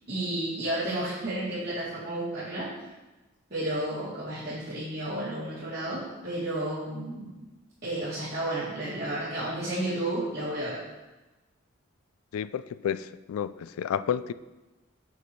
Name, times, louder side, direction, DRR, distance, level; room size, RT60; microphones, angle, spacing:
voice 1, 0.1-2.7 3.5-7.3 7.8-10.8, right 1 dB, 45° right, -14 dB, 3.0 m, -32 dB
voice 2, 12.3-14.3, left 8 dB, 80° left, 16 dB, 0.3 m, -31 dB
8.5 x 8.3 x 3.2 m, 1.1 s
head